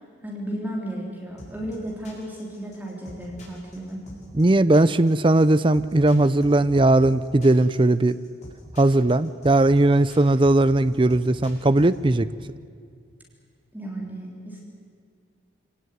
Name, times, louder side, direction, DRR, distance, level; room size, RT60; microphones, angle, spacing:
voice 1, 0.2-4.0 13.7-14.6, right 1 dB, 10° right, -2 dB, 3.6 m, -34 dB
sound 1, 1.4-12.0, equal, 35° left, 6.6 m, -44 dB
voice 2, 4.4-8.2 8.8-12.3, right 2 dB, 25° right, 14 dB, 0.5 m, -18 dB
26.0 x 18.5 x 9.4 m, 2.2 s
head